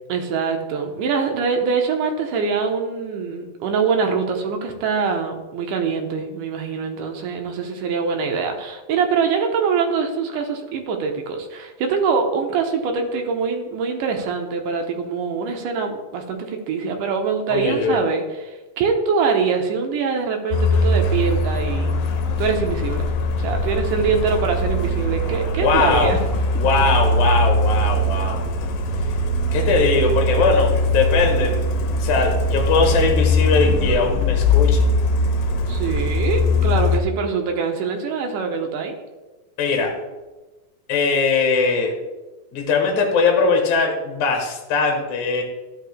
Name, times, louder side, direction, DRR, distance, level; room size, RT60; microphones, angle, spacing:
voice 1, 0.1-22.0 22.4-23.1 23.4-26.2 35.7-39.0, right 5 dB, 70° right, 3 dB, 2.3 m, -24 dB
voice 2, 17.5-18.0 25.6-26.1 26.6-28.4 29.5-31.6 32.0-34.9 39.6-39.9 40.9-41.9 42.5-45.4, left 4 dB, 65° left, 2 dB, 2.3 m, -20 dB
Truck, 20.5-37.0, left 1 dB, 80° left, 2.4 m, -21 dB
12.5 x 5.7 x 3.2 m, 1.2 s
omnidirectional pair, 4.3 m